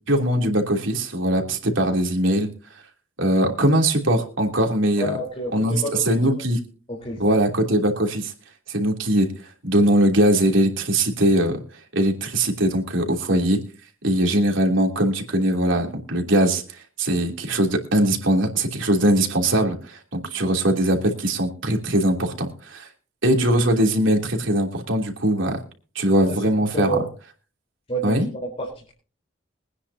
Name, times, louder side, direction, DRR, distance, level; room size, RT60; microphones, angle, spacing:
voice 1, 0.1-2.5 3.2-5.1 5.5-6.6 7.2-8.3 8.7-9.3 9.6-11.6 11.9-13.6 14.0-22.9 23.2-25.6 25.9-27.0 28.0-28.3, right 1 dB, 70° right, 2 dB, 3.2 m, -21 dB
voice 2, 5.0-6.2 6.9-7.5 26.3-26.4 26.7-27.1 27.9-28.9, right 1 dB, 30° left, -2 dB, 4.1 m, -30 dB
23.5 x 10.0 x 2.8 m, 0.37 s
head